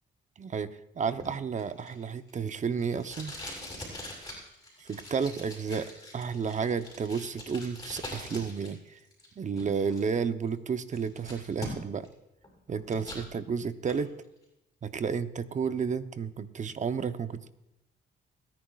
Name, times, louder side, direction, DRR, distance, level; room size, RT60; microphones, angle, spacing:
voice 1, 0.4-3.3 4.8-9.0 9.4-12.1 12.7-14.1 14.8-17.5, right 6 dB, 40° right, 11 dB, 0.8 m, -32 dB
Packing tape duct tape, 1.2-8.7 9.0-10.0 10.5-10.6 10.9-12.1 12.4-13.2 13.7-14.0, left 1 dB, 20° left, 6.1 m, -43 dB
27.5 x 10.5 x 2.4 m, 0.91 s
cardioid pair, 90°, 20 cm